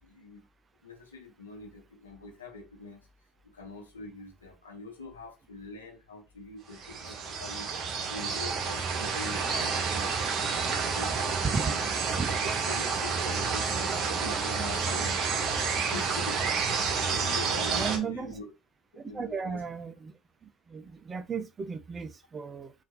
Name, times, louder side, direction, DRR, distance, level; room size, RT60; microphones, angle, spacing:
voice 1, 0.0-0.5 0.8-3.1 3.5-7.7 8.1-10.1 10.9-11.8 12.4-15.4 15.9-18.5 19.0-19.6, left 3 dB, 90° left, 1.0 m, -44 dB
sound 1, 6.8-18.0, right 5 dB, 50° right, 1.1 m, -29 dB
voice 2, 11.4-11.8 12.2-12.3 17.7-18.3 19.0-20.1 20.7-22.7, right 5 dB, 35° right, 0.5 m, -34 dB
4.0 x 2.6 x 3.8 m
hypercardioid pair, 60°, 0 cm